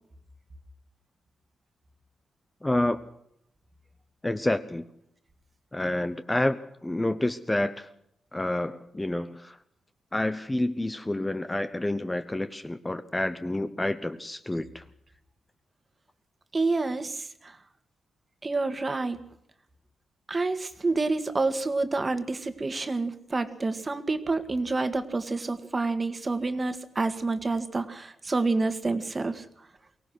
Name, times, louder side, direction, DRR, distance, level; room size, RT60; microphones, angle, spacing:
voice 1, 2.6-3.0 4.2-4.8 5.7-7.9 8.3-9.6 10.1-14.8, left 1 dB, 10° left, 9 dB, 1.0 m, -28 dB
voice 2, 16.5-17.6 18.4-19.2 20.3-29.4, right 3 dB, 25° right, 9 dB, 1.9 m, -28 dB
24.0 x 18.0 x 6.3 m, 0.75 s
cardioid pair, 125°, 0 cm